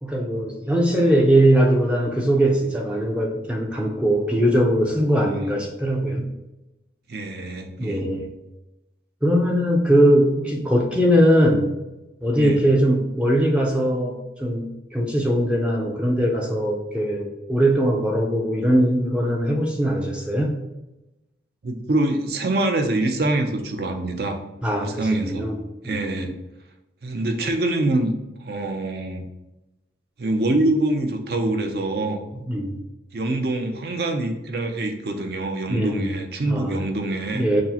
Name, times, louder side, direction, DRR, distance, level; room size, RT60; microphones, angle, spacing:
voice 1, 0.0-6.3 7.8-8.3 9.2-11.7 12.2-20.6 24.6-25.6 25.8-26.3 32.5-32.8 35.7-36.2 36.4-36.9 37.3-37.6, equal, 5° right, -1 dB, 0.4 m, -21 dB
voice 2, 5.2-5.5 7.1-8.1 12.4-12.6 21.6-24.4 24.8-25.5 25.8-26.3 27.0-28.1 28.4-29.2 30.2-32.2 33.1-37.4, right 2 dB, 60° right, 5 dB, 0.5 m, -25 dB
6.0 x 2.0 x 2.8 m, 0.98 s
head